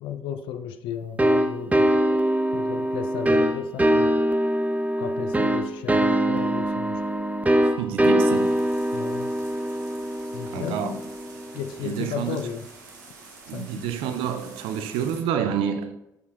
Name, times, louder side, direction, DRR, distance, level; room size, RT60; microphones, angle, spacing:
voice 1, 0.0-1.9 2.5-4.1 5.0-7.0 8.9-9.3 10.3-11.0 11.5-12.7 13.5-13.9, left 8 dB, 60° left, 0.5 m, -34 dB
sound 1, 1.2-11.7, right 1 dB, 15° right, 0.6 m, -23 dB
voice 2, 7.6-8.7 10.5-10.9 11.8-12.5 13.5-16.0, right 8 dB, 65° right, 0.5 m, -28 dB
sound 2, 8.3-15.2, right 3 dB, 80° right, 1.0 m, -47 dB
8.1 x 6.6 x 2.3 m
figure-of-eight pair, 45°, 10 cm